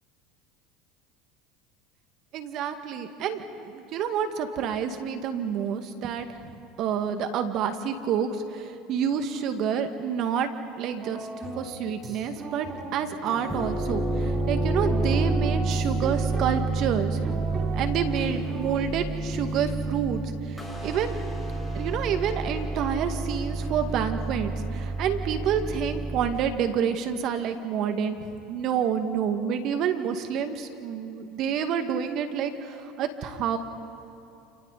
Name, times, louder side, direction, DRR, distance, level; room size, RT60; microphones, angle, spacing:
voice 1, 2.3-6.5 6.8-10.5 10.8-11.3 11.6-12.7 12.9-20.2 20.8-21.2 21.7-33.6, right 7 dB, 55° right, 7 dB, 2.1 m, -28 dB
sound 1, 11.0-18.8, right 2 dB, 35° right, 3.7 m, -38 dB
sound 2, 13.3-26.3, right 2 dB, ahead, 6.7 m, -29 dB
30.0 x 28.5 x 4.2 m, 2.9 s
hypercardioid pair, 85°, 0 cm